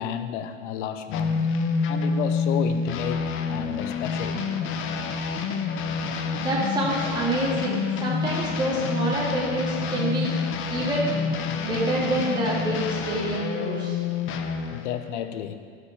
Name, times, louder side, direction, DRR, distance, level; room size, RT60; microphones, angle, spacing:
voice 1, 0.0-1.4 1.9-4.5 14.7-15.6, left 9 dB, 60° left, 9 dB, 0.9 m, -32 dB
sound 1, 1.1-14.9, left 5 dB, 30° left, 0.8 m, -28 dB
voice 2, 6.4-10.3 10.7-14.0, right 1 dB, 10° right, -7 dB, 2.9 m, -27 dB
14.5 x 6.0 x 4.7 m, 2.1 s
hypercardioid pair, 120°, 41 cm